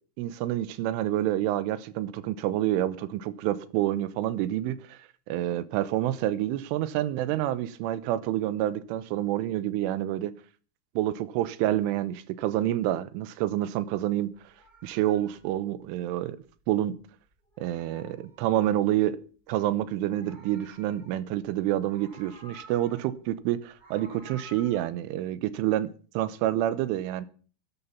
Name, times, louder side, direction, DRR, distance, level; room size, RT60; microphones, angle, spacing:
voice 1, 0.2-5.0 5.3-10.3 11.0-14.3 14.8-16.4 16.7-16.9 17.6-19.2 19.5-27.3, right 13 dB, 80° right, 3.4 m, -28 dB
Meow, 14.3-17.0 17.3-19.0 19.8-21.4 21.7-23.2 23.5-24.9, equal, 20° right, 1.3 m, -52 dB
13.0 x 11.0 x 7.0 m
omnidirectional pair, 5.7 m